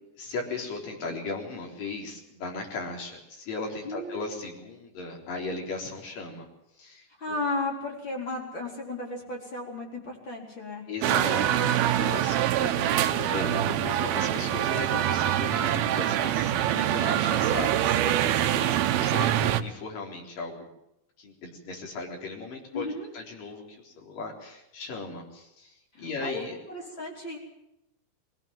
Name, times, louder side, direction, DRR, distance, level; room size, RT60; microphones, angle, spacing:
voice 1, 0.2-6.5 6.8-7.4 10.9-20.7 21.2-26.6, left 3 dB, 60° left, 0 dB, 5.6 m, -37 dB
voice 2, 3.8-4.3 7.2-10.9 14.4-15.1 22.7-23.1 25.9-26.4 26.7-27.4, left 2 dB, 30° left, -1 dB, 4.8 m, -35 dB
sound 1, 11.0-19.6, right 11 dB, 80° right, 2.8 m, -25 dB
22.0 x 17.5 x 7.5 m, 0.86 s
omnidirectional pair, 4.4 m